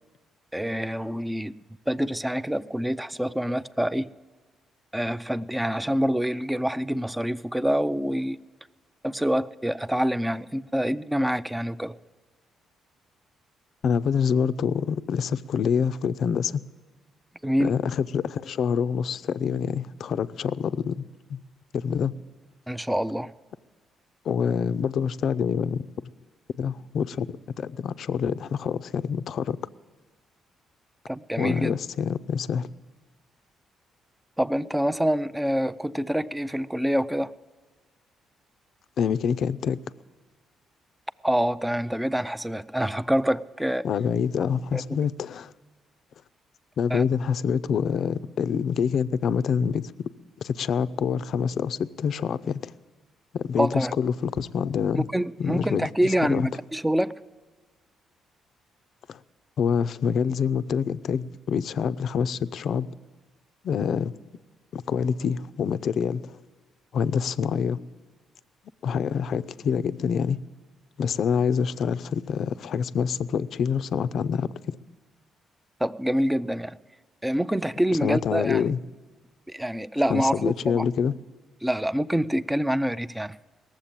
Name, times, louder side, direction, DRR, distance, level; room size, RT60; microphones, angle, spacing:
voice 1, 0.5-1.6 1.9-4.1 4.9-8.4 9.0-11.9 17.4-17.7 22.7-23.3 31.1-31.7 34.4-37.3 41.2-43.9 44.7-44.8 46.9-47.0 53.6-53.9 54.9-57.1 75.8-76.8 77.2-78.7 79.5-80.9 81.6-83.4, equal, 5° right, 0.4 m, -26 dB
voice 2, 13.8-16.6 17.6-21.0 21.3-21.4 21.7-22.2 24.3-25.9 26.6-29.6 31.4-32.7 39.0-39.9 43.8-45.5 46.8-50.1 50.4-52.7 53.3-55.1 55.4-56.5 59.1-59.2 59.6-62.9 63.6-64.1 64.7-66.4 66.9-67.8 68.8-70.4 71.0-74.8 78.0-78.8 80.1-81.1, left 7 dB, 65° left, 0.4 m, -26 dB
18.0 x 7.4 x 8.8 m
cardioid pair, 90°, 0 cm